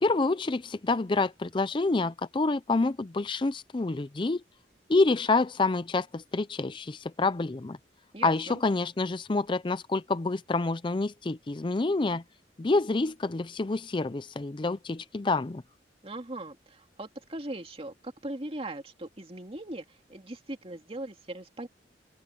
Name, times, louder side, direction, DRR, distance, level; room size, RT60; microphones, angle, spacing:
voice 1, 0.0-4.4 4.9-7.8 8.2-12.2 12.6-15.6, left 3 dB, 30° left, 0.5 m, -27 dB
voice 2, 8.1-8.6 16.0-21.7, right 1 dB, 35° right, 2.2 m, -39 dB
open air
head